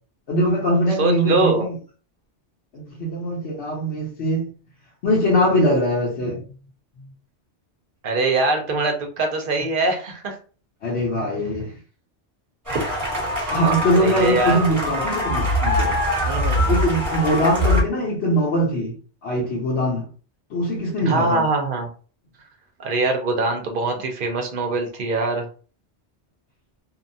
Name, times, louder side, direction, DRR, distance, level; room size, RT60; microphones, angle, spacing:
voice 1, 0.3-1.7 2.7-4.5 5.0-6.4 10.8-11.7 13.5-15.9 16.7-19.0 19.2-20.1 20.5-21.4, equal, 70° left, 1.1 m, -22 dB
voice 2, 1.0-1.7 8.0-10.4 12.7-13.1 13.4-13.6 14.0-14.6 16.3-16.7 21.0-21.9 22.8-25.5, right 3 dB, 55° right, 0.7 m, -23 dB
sound 1, 12.7-17.8, equal, 15° right, 1.1 m, -23 dB
2.8 x 2.3 x 2.6 m
omnidirectional pair, 1.2 m